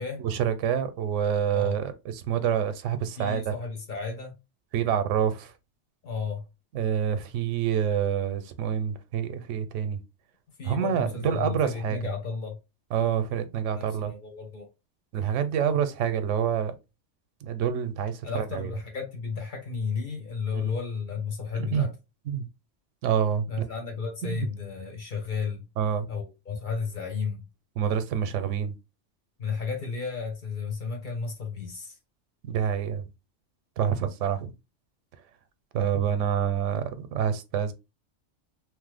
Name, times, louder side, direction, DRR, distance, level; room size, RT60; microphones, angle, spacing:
voice 1, 0.2-1.9 2.3-3.5 4.7-5.5 6.7-10.0 10.6-12.0 12.9-14.1 15.1-16.8 17.4-18.7 20.5-20.7 21.5-21.9 22.3-22.4 23.0-23.7 24.3-24.4 25.8-26.1 27.8-28.7 32.4-33.0 33.8-34.5 35.7-37.7, right 8 dB, 90° right, 0.9 m, -27 dB
voice 2, 3.2-4.4 6.0-6.4 10.6-12.6 13.7-14.7 18.2-21.9 23.5-25.6 26.1-27.4 29.4-32.0, left 5 dB, 45° left, 0.9 m, -33 dB
3.1 x 2.0 x 3.3 m
omnidirectional pair, 1.2 m